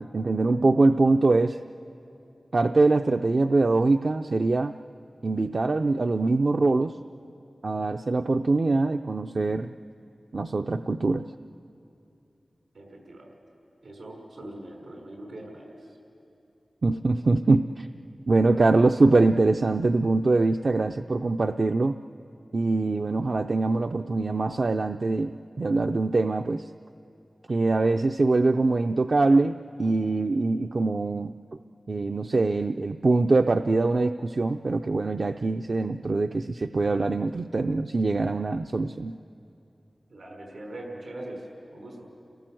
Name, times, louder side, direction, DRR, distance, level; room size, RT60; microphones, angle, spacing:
voice 1, 0.0-1.6 2.5-4.7 5.2-7.0 7.6-9.7 10.3-11.3 16.8-17.9 18.3-22.0 22.5-26.7 27.5-31.3 31.9-39.2, right 3 dB, 60° right, 6 dB, 0.5 m, -23 dB
voice 2, 12.7-13.3 13.8-15.7 40.1-41.4 41.7-42.1, right 1 dB, 85° right, 0 dB, 5.6 m, -41 dB
30.0 x 18.0 x 7.7 m, 2.7 s
cardioid pair, 45°, 0 cm